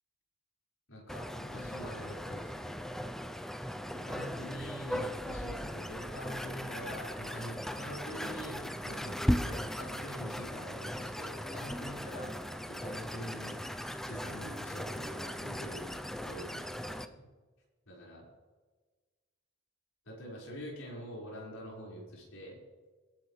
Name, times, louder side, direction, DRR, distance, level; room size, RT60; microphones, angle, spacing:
voice 1, 0.9-2.8 3.9-12.4 12.7-13.6 14.0-17.3 17.9-18.3 20.1-22.6, equal, 85° left, -4 dB, 5.3 m, -45 dB
sound 1, 1.1-17.1, equal, ahead, 0.5 m, -38 dB
22.0 x 11.5 x 3.3 m, 1.3 s
head